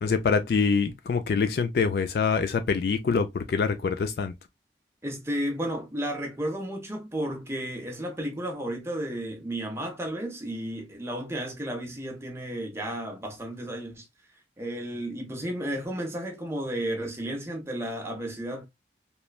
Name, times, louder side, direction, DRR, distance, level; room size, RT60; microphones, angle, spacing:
voice 1, 0.0-4.3, left 5 dB, 60° left, 0.3 m, -25 dB
voice 2, 5.0-14.1 14.6-18.7, right 1 dB, 15° right, 0.6 m, -33 dB
3.0 x 2.2 x 2.2 m
head